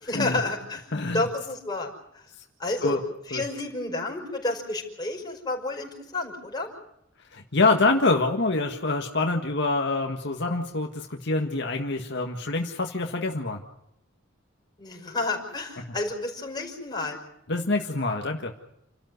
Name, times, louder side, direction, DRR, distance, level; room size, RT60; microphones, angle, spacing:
voice 1, 0.0-0.9 1.1-2.2 2.6-3.0 3.3-6.7 14.8-17.2, left 2 dB, 20° left, 1 dB, 5.5 m, -30 dB
voice 2, 0.9-1.2 2.8-3.0 3.3-3.4 7.3-13.6 17.5-18.5, left 3 dB, 60° left, 3 dB, 1.7 m, -25 dB
29.0 x 13.5 x 9.5 m, 0.82 s
head